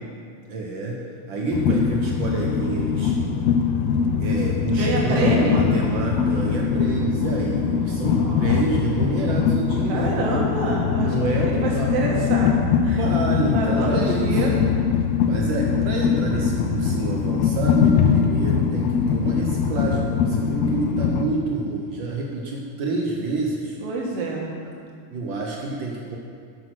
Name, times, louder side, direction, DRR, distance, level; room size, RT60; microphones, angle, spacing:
voice 1, 0.5-3.1 4.2-10.2 10.9-11.9 12.9-14.6 15.3-23.8 25.1-26.2, right 2 dB, 85° right, -1 dB, 1.0 m, -28 dB
Train, 1.5-21.3, left 6 dB, 85° left, 1.4 m, -22 dB
voice 2, 4.7-5.7 8.1-8.8 9.9-12.5 12.8-13.0 13.5-14.6 18.1-18.3 23.8-24.5, right 2 dB, 60° right, -2 dB, 2.3 m, -27 dB
11.0 x 6.0 x 6.1 m, 2.2 s
omnidirectional pair, 3.4 m